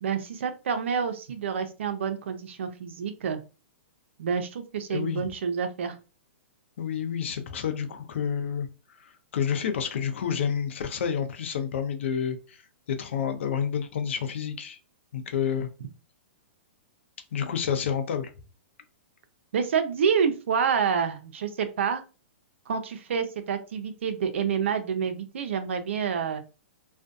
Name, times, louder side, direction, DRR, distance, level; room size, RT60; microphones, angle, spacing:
voice 1, 0.0-3.4 4.2-6.0 19.5-22.0 22.7-26.4, right 6 dB, 75° right, 8 dB, 0.5 m, -28 dB
voice 2, 4.9-5.3 6.8-8.7 9.0-12.6 12.9-14.8 15.1-15.7 17.3-18.3, left 7 dB, 70° left, 7 dB, 0.6 m, -29 dB
2.5 x 2.2 x 2.5 m, 0.32 s
hypercardioid pair, 150°, 7 cm